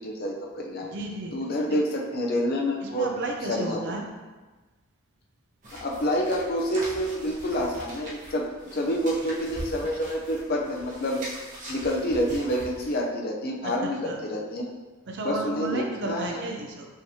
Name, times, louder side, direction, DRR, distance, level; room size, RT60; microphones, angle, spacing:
voice 1, 0.0-0.9 1.3-3.1 3.5-3.8 5.7-11.3 11.7-14.7 15.2-16.4, equal, 45° left, 0 dB, 0.6 m, -28 dB
voice 2, 0.8-1.4 2.8-4.0 13.6-14.2 15.1-16.9, right 2 dB, 55° right, 2 dB, 0.5 m, -33 dB
sound 1, 5.6-12.9, equal, 35° right, 0.9 m, -41 dB
5.5 x 3.1 x 2.8 m, 1.3 s
head